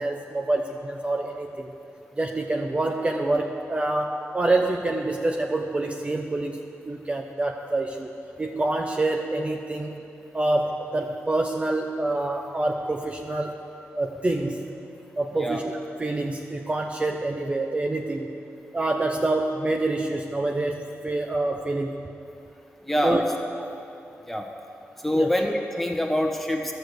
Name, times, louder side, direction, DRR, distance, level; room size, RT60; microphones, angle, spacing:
voice 1, 0.0-1.7 2.2-8.1 8.4-10.1 10.3-13.6 13.9-14.6 15.2-15.7 16.0-18.4 18.7-21.9 23.0-23.2 25.1-25.3, right 2 dB, 25° right, 3 dB, 0.7 m, -26 dB
voice 2, 22.8-23.2 24.3-24.4 25.0-26.7, equal, 5° left, 2 dB, 1.4 m, -25 dB
12.0 x 6.6 x 7.9 m, 2.6 s
cardioid pair, 80°, 5 cm